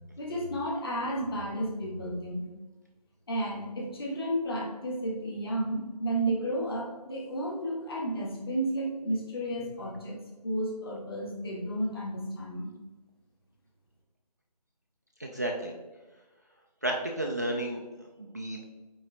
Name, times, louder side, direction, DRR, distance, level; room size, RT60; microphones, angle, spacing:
voice 1, 0.2-2.5 3.3-10.2 10.4-12.7, right 1 dB, 35° left, -2 dB, 1.7 m, -32 dB
voice 2, 15.2-15.7 16.8-17.8 18.2-18.7, right 1 dB, 25° right, 0 dB, 0.4 m, -32 dB
8.7 x 3.1 x 3.9 m, 1.2 s
figure-of-eight pair, 165°, 21 cm